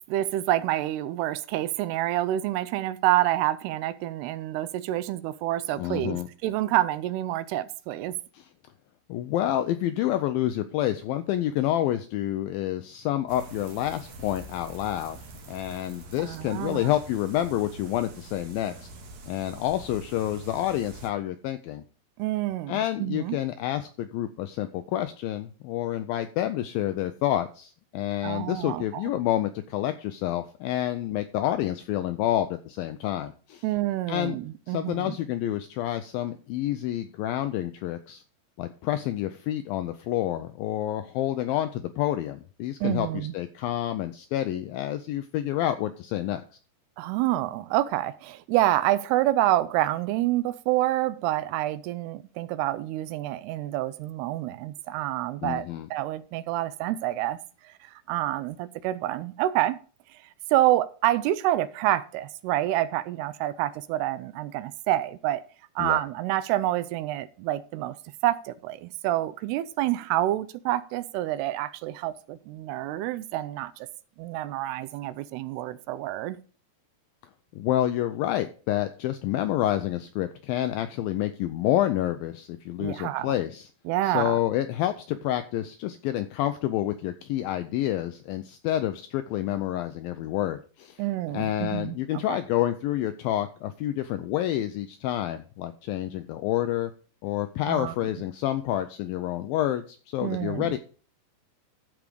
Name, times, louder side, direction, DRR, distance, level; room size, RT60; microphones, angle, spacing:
voice 1, 0.0-8.2 16.2-16.9 22.2-23.4 28.2-29.0 33.6-35.2 42.8-43.3 47.0-57.4 58.1-59.8 60.5-65.4 65.8-68.0 68.2-73.9 74.2-76.4 82.8-83.3 83.9-84.4 91.0-92.0 92.3-92.4 97.7-97.9 100.2-100.7, right 14 dB, 85° right, 2.6 m, -27 dB
voice 2, 5.8-6.3 8.3-8.5 9.1-15.2 15.5-18.9 19.3-21.8 22.7-33.6 34.1-34.4 34.7-38.2 38.6-46.4 55.4-55.9 65.8-66.0 77.5-83.7 84.0-91.0 91.3-96.9 97.2-100.8, left 13 dB, 85° left, 2.1 m, -28 dB
sound 1, 13.3-21.1, right 2 dB, 55° right, 2.2 m, -45 dB
13.5 x 4.9 x 5.1 m
omnidirectional pair, 4.7 m